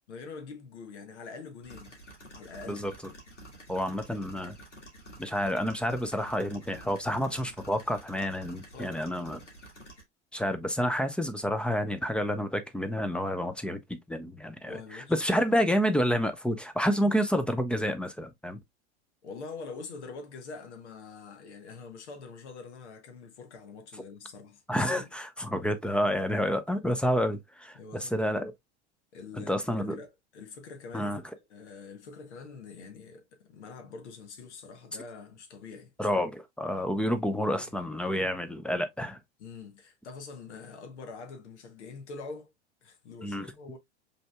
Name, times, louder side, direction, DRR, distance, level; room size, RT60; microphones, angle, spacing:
voice 1, 0.1-2.0 2.3-2.8 8.7-9.1 10.6-10.7 14.7-15.3 19.2-25.1 27.7-28.3 29.1-31.2 31.5-35.9 37.5-37.7 39.4-42.5 42.8-43.8, left 4 dB, 70° left, 1.2 m, -45 dB
sound 1, 1.6-10.0, right 1 dB, 90° left, 1.8 m, -50 dB
voice 2, 3.7-4.5 5.2-9.4 10.3-14.8 15.1-18.6 24.7-28.5 29.4-30.0 30.9-31.2 36.0-39.2 43.2-43.5, equal, 5° left, 0.6 m, -29 dB
5.2 x 3.4 x 2.2 m
figure-of-eight pair, 85°, 35 cm